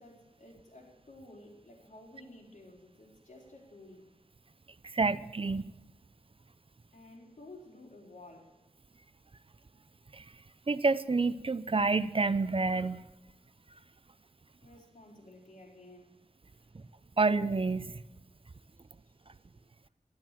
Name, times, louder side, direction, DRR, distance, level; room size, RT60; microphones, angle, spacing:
voice 1, 0.0-4.1 6.9-8.6 14.6-16.1 16.5-16.7 19.2-19.4, left 2 dB, 75° left, 3.9 m, -53 dB
voice 2, 4.9-5.7 10.1-10.2 10.7-13.1 17.2-18.0, right 3 dB, 45° right, 0.6 m, -28 dB
12.0 x 11.5 x 7.4 m
wide cardioid pair, 60°, 13 cm